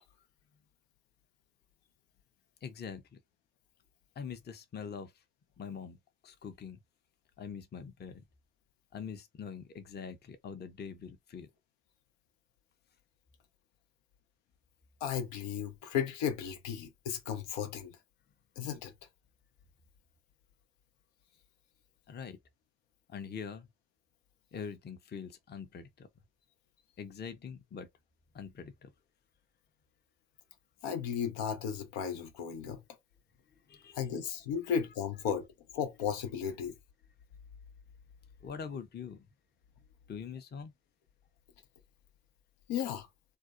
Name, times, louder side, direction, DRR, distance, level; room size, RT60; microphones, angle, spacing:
voice 1, 2.6-3.2 4.2-5.1 5.6-6.0 6.2-6.8 7.4-8.2 8.9-11.5 22.1-22.4 23.1-23.7 24.5-26.1 27.0-27.9 28.3-28.9 33.7-34.0 34.6-34.7 38.4-39.3 40.1-40.7, left 6 dB, 25° left, 0.5 m, -43 dB
voice 2, 15.0-17.9 18.6-18.9 30.8-32.8 33.9-35.5 35.7-36.7 42.7-43.1, left 8 dB, 75° left, 0.7 m, -34 dB
2.6 x 2.1 x 2.3 m
hypercardioid pair, 45°, 45 cm